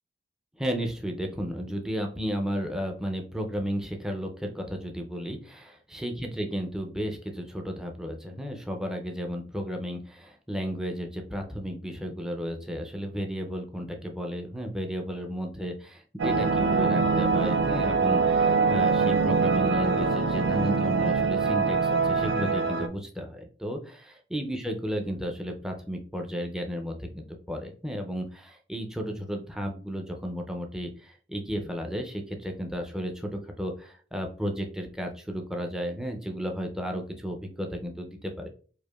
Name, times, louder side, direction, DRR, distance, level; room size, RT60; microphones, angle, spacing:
voice 1, 0.6-38.5, equal, 5° right, 3 dB, 0.4 m, -33 dB
sound 1, 16.2-22.9, right 4 dB, 75° right, 0.4 m, -24 dB
4.6 x 2.4 x 2.3 m, 0.41 s
head